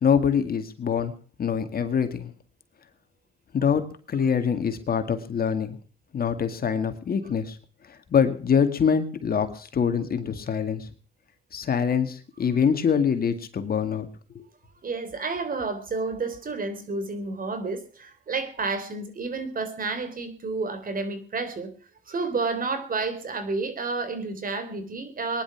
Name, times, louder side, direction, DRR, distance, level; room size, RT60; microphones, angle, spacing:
voice 1, 0.0-1.1 1.4-2.3 3.5-3.8 4.1-5.8 6.1-7.6 7.9-10.9 11.5-14.1 14.4-14.5, left 7 dB, 50° left, 8 dB, 2.1 m, -24 dB
voice 2, 14.8-21.7 22.1-25.4, right 3 dB, 45° right, 10 dB, 3.4 m, -30 dB
20.0 x 11.0 x 5.9 m, 0.43 s
cardioid pair, 90°, 20 cm